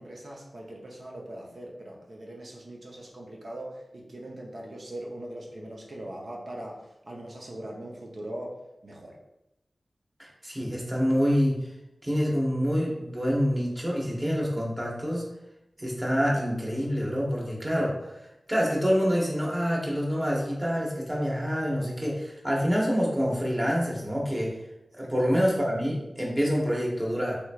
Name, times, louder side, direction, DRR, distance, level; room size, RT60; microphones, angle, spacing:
voice 1, 0.0-9.2 25.0-25.1, right 1 dB, 65° right, -2 dB, 0.7 m, -41 dB
voice 2, 10.2-11.6 12.0-15.2 15.8-17.9 18.5-24.5 24.9-27.4, equal, 25° right, -3 dB, 1.0 m, -26 dB
3.3 x 2.9 x 2.4 m, 0.89 s
cardioid pair, 50°, 0 cm